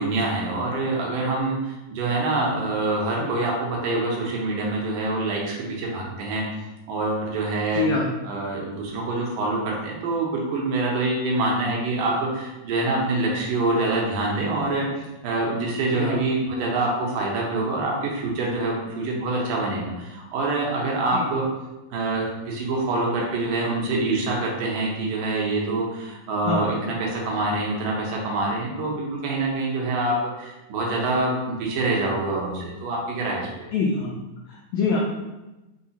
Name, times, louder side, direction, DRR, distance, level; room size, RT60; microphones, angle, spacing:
voice 1, 0.0-6.5 6.9-7.9 8.2-21.5 21.9-33.7, right 2 dB, 75° right, -2 dB, 2.3 m, -25 dB
voice 2, 7.7-8.1 15.9-16.2 21.1-21.3 26.4-26.7 33.7-34.1 34.5-35.0, left 4 dB, 85° left, -2 dB, 1.6 m, -25 dB
6.3 x 2.3 x 2.8 m, 1.0 s
omnidirectional pair, 3.9 m